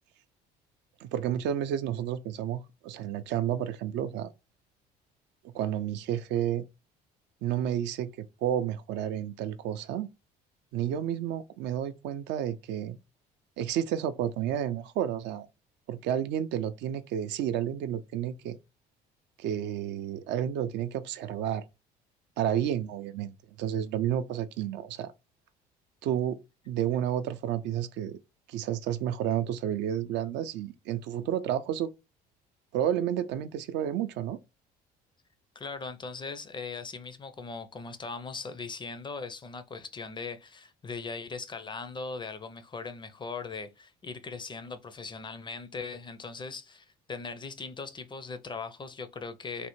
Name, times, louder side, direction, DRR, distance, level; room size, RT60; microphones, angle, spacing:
voice 1, 1.0-4.3 5.4-6.6 7.4-10.1 10.7-13.0 13.6-15.5 15.9-18.6 19.4-21.6 22.4-25.1 26.0-26.4 26.7-28.2 28.5-31.9 32.7-34.4, right 10 dB, 65° right, 0.4 m, -31 dB
voice 2, 35.6-49.7, left 4 dB, 25° left, 0.4 m, -39 dB
3.3 x 2.0 x 3.0 m
hypercardioid pair, 65°, 20 cm